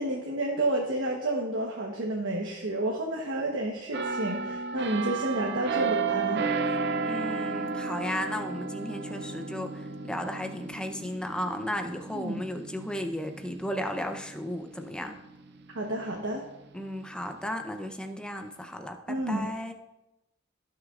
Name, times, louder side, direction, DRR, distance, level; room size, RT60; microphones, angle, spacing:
voice 1, 0.0-6.4 12.1-12.4 15.7-16.4 19.1-19.5, right 1 dB, 90° right, 0 dB, 1.2 m, -30 dB
sound 1, 3.9-15.5 15.9-16.2, right 4 dB, 60° right, 0.6 m, -33 dB
voice 2, 7.0-15.2 16.7-19.7, left 1 dB, 5° left, 5 dB, 0.7 m, -35 dB
17.0 x 6.4 x 2.5 m, 0.95 s
head